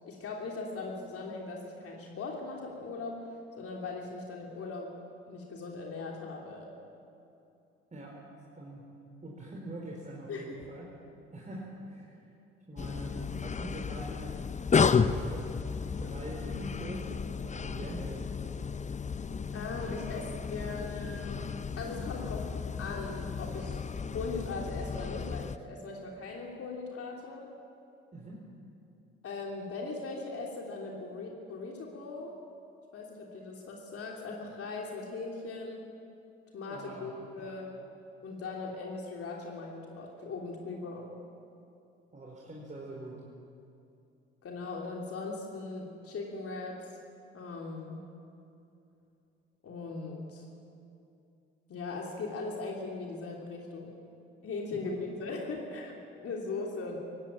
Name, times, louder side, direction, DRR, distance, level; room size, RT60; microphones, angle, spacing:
voice 1, 0.1-3.2 3.6-4.9 5.3-6.7 10.3-10.6 19.5-21.5 21.8-22.5 22.8-23.8 24.1-27.5 29.2-32.4 32.9-35.9 36.5-37.7 38.2-41.1 44.4-46.8 47.3-48.0 49.6-50.4 51.7-54.0 54.4-57.0, left 3 dB, 50° left, -1 dB, 3.4 m, -39 dB
voice 2, 8.5-8.9 9.2-10.9 11.3-12.3 12.7-14.4 15.3-15.4 16.0-18.2 28.1-28.4 36.7-37.5 42.1-43.2 54.8-54.9, right 1 dB, 25° right, -3 dB, 4.7 m, -44 dB
sound 1, 12.8-25.6, left 5 dB, 25° left, 0.8 m, -33 dB
19.5 x 16.5 x 8.8 m, 2.7 s
hypercardioid pair, 50°, 29 cm